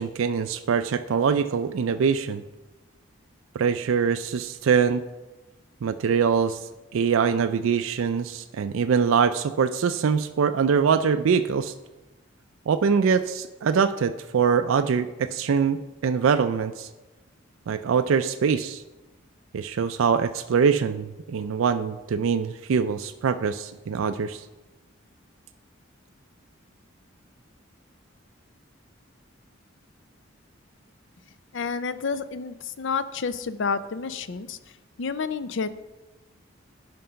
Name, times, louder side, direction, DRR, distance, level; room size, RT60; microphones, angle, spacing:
voice 1, 0.0-2.4 3.5-5.0 5.8-6.6 6.9-11.7 12.7-15.8 16.0-16.9 17.7-18.8 19.5-24.4, right 6 dB, 80° right, 9 dB, 0.4 m, -23 dB
voice 2, 31.5-34.6 35.0-35.7, left 5 dB, 65° left, 13 dB, 0.5 m, -29 dB
11.5 x 5.3 x 5.7 m, 1.1 s
head